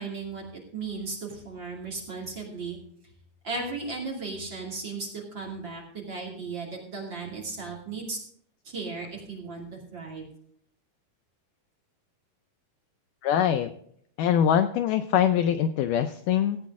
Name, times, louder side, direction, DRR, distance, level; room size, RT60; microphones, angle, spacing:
voice 1, 0.0-2.8 3.4-8.2 8.6-10.3, right 4 dB, 35° right, -2 dB, 2.9 m, -36 dB
voice 2, 13.2-13.7 14.2-16.6, left 9 dB, 80° left, 9 dB, 1.9 m, -23 dB
16.0 x 8.5 x 3.6 m, 0.65 s
omnidirectional pair, 4.2 m